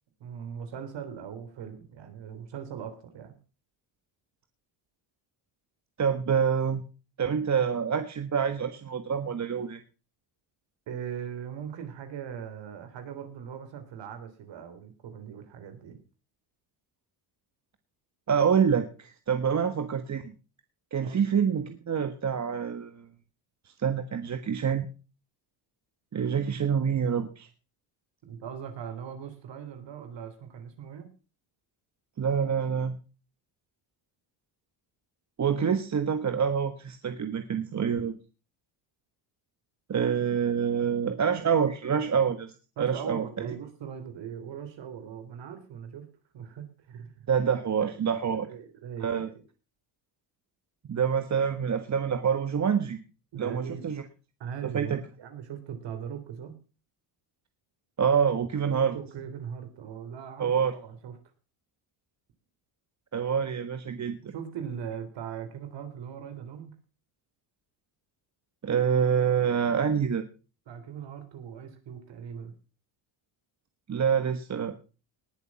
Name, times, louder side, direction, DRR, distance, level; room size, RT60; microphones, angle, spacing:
voice 1, 0.2-3.4 10.9-16.0 19.5-19.6 21.0-21.3 28.2-31.1 42.8-46.1 46.3-47.3 47.8-49.4 53.3-53.9 54.4-56.6 58.6-61.2 64.2-66.7 70.7-72.5, right 8 dB, 60° right, 7 dB, 3.4 m, -40 dB
voice 2, 6.0-6.8 7.2-9.8 18.3-20.3 20.9-23.1 23.8-24.9 26.1-27.5 32.2-33.0 35.4-38.1 39.9-42.5 42.8-43.2 47.3-48.5 49.0-49.3 50.9-53.0 53.4-54.0 54.7-55.0 58.0-58.9 60.4-60.7 63.1-64.3 68.6-70.2 73.9-74.7, right 7 dB, 35° right, 8 dB, 1.5 m, -26 dB
19.5 x 7.0 x 5.9 m, 0.35 s
cardioid pair, 95°, 48 cm